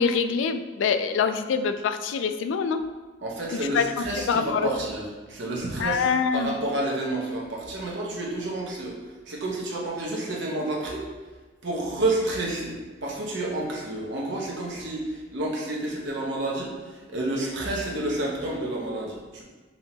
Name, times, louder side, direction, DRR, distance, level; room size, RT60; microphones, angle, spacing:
voice 1, 0.0-2.8 3.5-3.8 4.2-4.7 5.8-6.6, left 6 dB, 75° left, 9 dB, 0.3 m, -25 dB
voice 2, 3.2-6.1 6.3-9.0 9.3-11.1 11.6-12.7 13.0-19.4, right 2 dB, 65° right, -3 dB, 0.9 m, -30 dB
5.5 x 2.8 x 2.8 m, 1.3 s
head